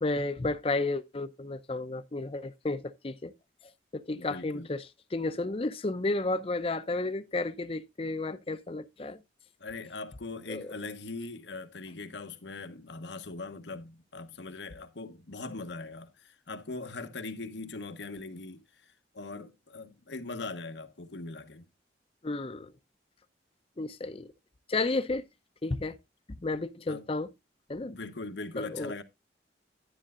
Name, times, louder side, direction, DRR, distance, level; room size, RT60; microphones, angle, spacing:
voice 1, 0.0-3.3 3.9-4.9 5.1-9.2 10.5-10.7 22.2-22.7 23.8-24.3 24.7-25.2 25.6-26.0 26.4-27.3 27.7-27.9 28.6-28.9, left 2 dB, 30° left, 0.5 m, -32 dB
voice 2, 4.1-4.7 9.6-21.6 26.9-27.0 27.9-29.0, left 3 dB, 80° left, 1.1 m, -41 dB
10.5 x 10.0 x 2.4 m
head